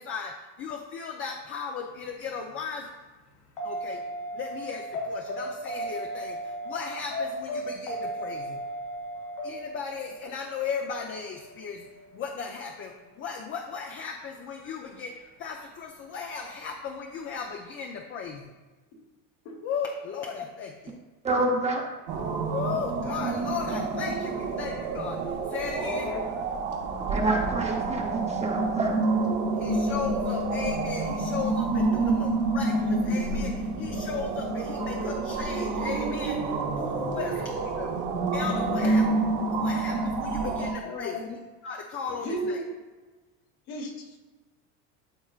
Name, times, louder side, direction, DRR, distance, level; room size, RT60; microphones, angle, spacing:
voice 1, 0.0-2.9 3.6-4.0 4.3-8.6 9.4-11.9 12.1-15.1 15.4-18.5 19.6-21.0 22.5-26.1 29.6-37.9 38.3-39.1 39.5-41.4 41.6-42.6, left 6 dB, 35° left, 2 dB, 0.7 m, -36 dB
sound 1, 3.6-12.0 14.6-14.7, right 1 dB, 80° left, 1.7 m, -35 dB
voice 2, 21.2-21.8 27.1-29.0, right 2 dB, 20° right, 1 dB, 0.9 m, -27 dB
sound 2, 22.1-40.7, right 3 dB, 55° right, 1.3 m, -28 dB
voice 3, 25.7-26.3 31.9-32.2 37.1-37.4 38.7-39.0 40.4-41.4 42.2-42.7 43.7-44.2, left 1 dB, 55° left, 2 dB, 1.6 m, -35 dB
12.5 x 4.4 x 2.5 m, 1.3 s
supercardioid pair, 130°, 35 cm